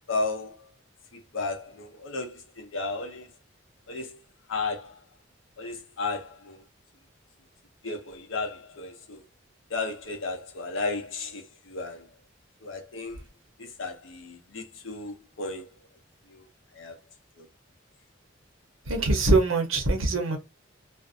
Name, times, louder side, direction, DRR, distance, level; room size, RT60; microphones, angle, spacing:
voice 1, 0.1-0.7 1.1-3.3 3.9-4.2 4.5-5.0 5.6-6.6 7.8-9.2 9.7-12.1 12.6-13.2 13.6-15.7 16.3-16.5 16.7-17.0 17.4-17.5, left 3 dB, 80° left, 0.7 m, -34 dB
voice 2, 18.9-20.4, right 2 dB, 90° right, 0.8 m, -23 dB
2.5 x 2.0 x 2.5 m
head